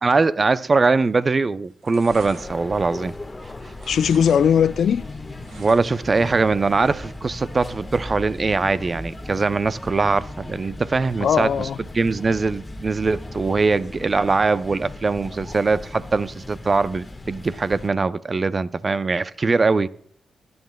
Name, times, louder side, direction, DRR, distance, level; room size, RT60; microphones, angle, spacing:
voice 1, 0.0-3.1 5.6-11.7 11.9-19.9, right 4 dB, 45° right, 0.5 m, -21 dB
sound 1, 1.0-1.3 1.6-3.4 3.7-4.4 4.7-6.1 6.5-6.6, right 4 dB, 80° right, 1.9 m, -45 dB
sound 2, 2.1-17.9, left 2 dB, 25° left, 1.3 m, -37 dB
voice 2, 3.9-5.0 11.2-11.8, left 8 dB, 75° left, 0.3 m, -19 dB
18.5 x 9.5 x 2.2 m
supercardioid pair, 45°, 0 cm